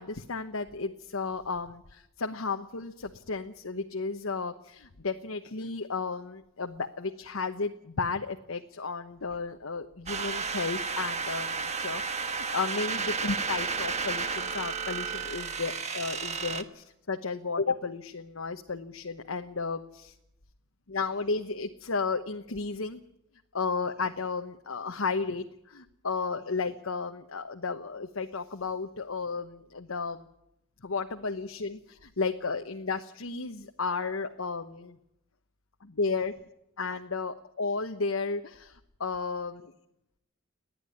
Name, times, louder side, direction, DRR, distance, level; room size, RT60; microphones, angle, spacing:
voice 1, 0.0-20.1 20.9-23.0 23.5-30.3 30.8-35.0 35.8-36.3 36.8-39.7, left 4 dB, 85° left, 5 dB, 1.1 m, -33 dB
sound 1, 10.1-16.6, right 5 dB, 35° right, 1.3 m, -32 dB
30.0 x 10.5 x 9.6 m, 0.84 s
head